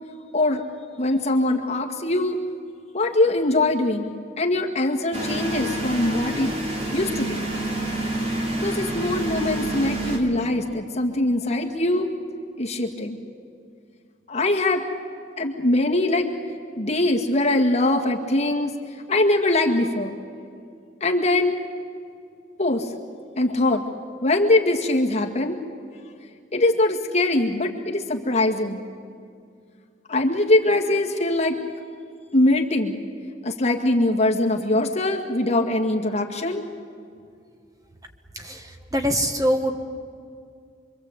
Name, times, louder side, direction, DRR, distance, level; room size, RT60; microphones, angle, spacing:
voice 1, 0.3-0.6 1.0-2.4 2.9-6.5 6.9-7.4 8.6-12.1 12.6-13.2 14.3-14.9 15.4-16.3 16.8-18.7 19.1-20.1 21.0-21.6 22.6-22.9 23.4-23.8 24.2-25.6 26.5-28.8 30.1-31.6 32.3-33.0 33.4-36.6, left 2 dB, 35° left, 2 dB, 2.0 m, -22 dB
sound 1, 5.1-10.2, right 1 dB, 35° right, 3.0 m, -28 dB
voice 2, 38.9-39.8, equal, 20° right, 5 dB, 1.3 m, -23 dB
26.5 x 23.5 x 8.1 m, 2.3 s
head